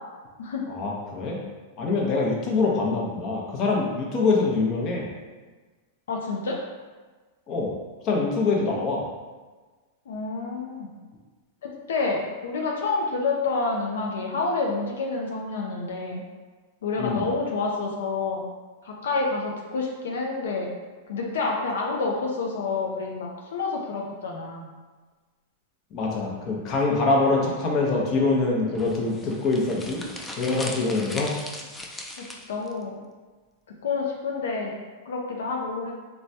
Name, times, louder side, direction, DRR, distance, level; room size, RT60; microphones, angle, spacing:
voice 1, 0.7-1.4 1.8-5.1 7.5-7.7 8.0-9.0 17.0-17.2 25.9-30.0 30.4-31.3, left 3 dB, 40° left, -1 dB, 0.7 m, -24 dB
voice 2, 6.1-6.6 10.1-10.9 11.6-16.2 16.8-18.4 18.8-20.7 21.1-24.7 32.2-33.0 33.8-34.7 35.1-35.9, left 3 dB, 85° left, -1 dB, 0.4 m, -28 dB
sound 1, 28.7-32.7, left 1 dB, 10° left, 0.3 m, -38 dB
3.1 x 2.1 x 2.7 m, 1.3 s
hypercardioid pair, 125°, 0 cm